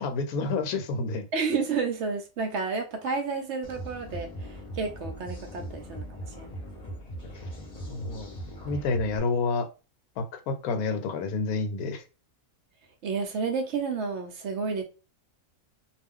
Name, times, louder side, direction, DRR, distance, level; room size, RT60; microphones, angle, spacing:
voice 1, 0.0-1.3 7.9-8.3 8.6-9.7 10.2-12.0, left 3 dB, 80° left, 1.1 m, -29 dB
voice 2, 1.3-6.5 13.0-14.8, right 5 dB, 65° right, 0.7 m, -31 dB
sound 1, 3.6-9.2, right 1 dB, 30° left, 0.8 m, -40 dB
2.3 x 2.3 x 3.6 m
omnidirectional pair, 1.6 m